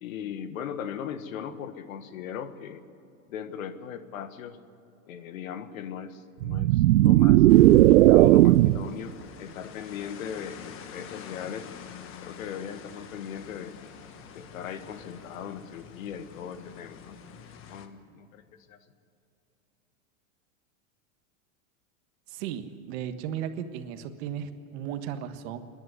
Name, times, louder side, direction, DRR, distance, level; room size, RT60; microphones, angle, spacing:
voice 1, 0.0-2.8 3.3-4.6 5.1-11.7 12.2-13.7 14.3-17.2 17.7-18.4 18.7-18.8, left 8 dB, 75° left, 10 dB, 1.6 m, -38 dB
sound 1, 6.4-8.9, right 16 dB, 90° right, 0.5 m, -16 dB
sound 2, 7.5-17.9, left 7 dB, 30° left, 1.4 m, -46 dB
voice 2, 22.3-25.6, right 9 dB, 50° right, 8 dB, 1.5 m, -35 dB
26.5 x 11.0 x 9.6 m, 2.7 s
supercardioid pair, 140°, 41 cm